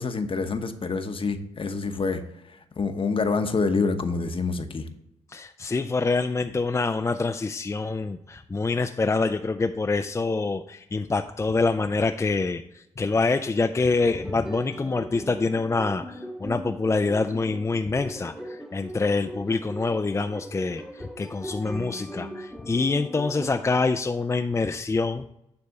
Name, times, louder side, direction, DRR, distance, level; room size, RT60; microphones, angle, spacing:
voice 1, 0.0-2.2 2.8-4.9, left 4 dB, 45° left, 8 dB, 1.0 m, -26 dB
voice 2, 5.3-25.3, left 3 dB, 25° left, 7 dB, 0.4 m, -26 dB
sound 1, 13.9-23.5, equal, 5° right, 1.1 m, -39 dB
9.7 x 3.4 x 6.5 m, 0.82 s
cardioid pair, 70°, 12 cm